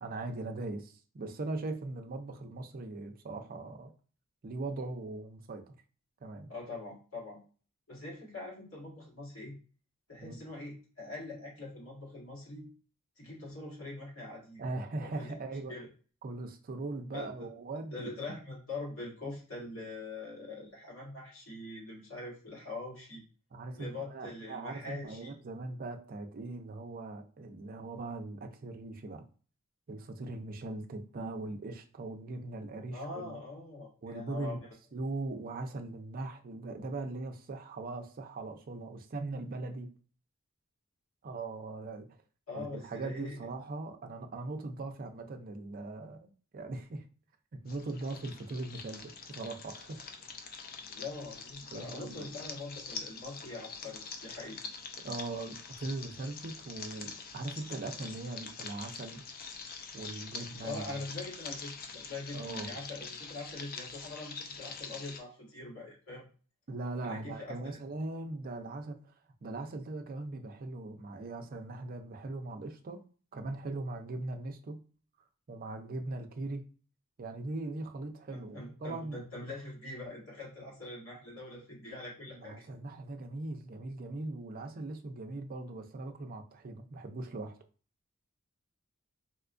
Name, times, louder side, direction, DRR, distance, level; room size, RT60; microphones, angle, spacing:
voice 1, 0.0-3.9 4.4-5.6 6.2-6.5 10.2-10.4 14.6-15.7 16.2-18.4 23.5-29.2 29.9-33.4 34.0-34.6 34.9-39.9 41.2-42.1 42.5-47.0 47.6-50.0 51.7-52.3 55.0-59.2 59.9-61.0 62.3-62.8 66.7-69.1 69.4-73.0 73.3-74.8 75.5-76.6 77.2-79.2 82.3-87.6, right 2 dB, 40° right, 6 dB, 0.5 m, -40 dB
voice 2, 6.5-7.4 7.9-9.5 10.1-12.7 13.2-14.7 15.0-15.4 15.7-15.9 17.1-17.3 17.9-23.2 23.8-25.3 32.9-34.6 42.5-43.4 50.9-54.6 60.6-66.2 67.0-67.8 78.3-82.6, left 2 dB, 80° left, -4 dB, 1.7 m, -43 dB
sound 1, 47.7-65.2, left 5 dB, 45° left, 0.4 m, -45 dB
4.2 x 2.2 x 2.5 m, 0.39 s
head